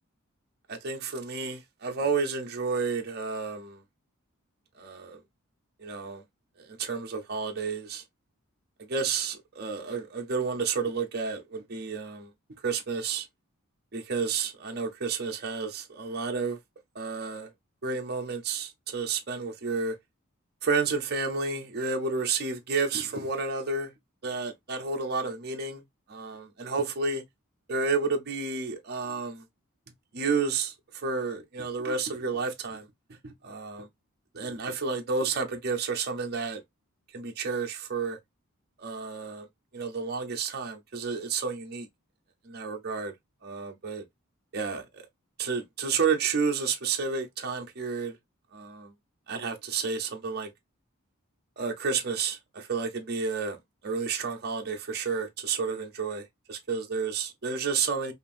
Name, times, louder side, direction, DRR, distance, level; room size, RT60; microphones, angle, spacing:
voice 1, 0.7-3.8 4.8-5.2 5.8-6.2 6.6-8.0 8.8-12.3 12.6-13.3 13.9-16.6 16.9-17.5 17.8-19.9 20.6-23.9 24.2-25.8 26.1-27.2 27.7-29.4 30.1-32.9 33.2-33.9 34.3-36.6 37.1-38.2 38.8-39.5 39.7-41.9 42.5-43.1 43.4-44.0 44.5-45.0 45.4-48.2 48.5-48.9 49.3-50.5 51.6-53.6 53.8-58.1, right 5 dB, 50° right, 0.7 m, -31 dB
5.2 x 2.6 x 2.5 m
head